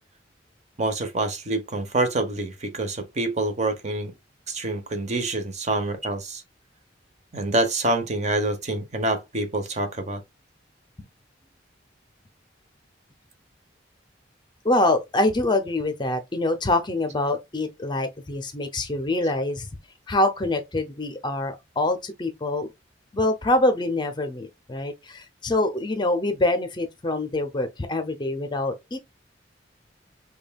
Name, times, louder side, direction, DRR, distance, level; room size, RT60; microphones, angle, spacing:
voice 1, 0.8-4.1 4.5-6.4 7.3-10.2, right 2 dB, 40° right, 0.8 m, -26 dB
voice 2, 14.6-19.7 20.1-22.7 23.1-29.0, left 2 dB, 25° left, 0.5 m, -25 dB
5.2 x 2.3 x 2.2 m
head